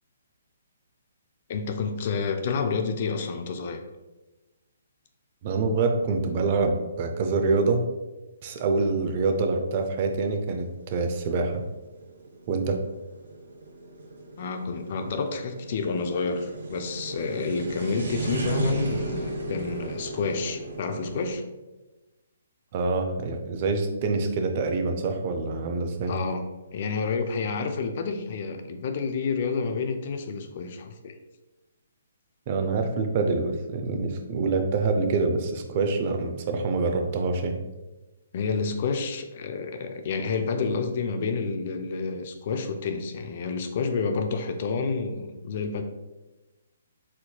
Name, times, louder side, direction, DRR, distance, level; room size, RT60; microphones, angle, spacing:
voice 1, 1.5-3.8 14.4-21.4 26.1-26.5 26.7-31.1 38.3-45.8, left 4 dB, 50° left, 6 dB, 0.4 m, -29 dB
voice 2, 5.4-7.8 8.4-11.6 12.5-12.8 22.7-26.1 32.5-37.6, right 3 dB, 40° right, 5 dB, 0.4 m, -26 dB
sound 1, 8.9-21.3, right 2 dB, 75° right, 0.7 m, -35 dB
4.3 x 2.7 x 2.3 m, 1.1 s
hypercardioid pair, 140°, 0 cm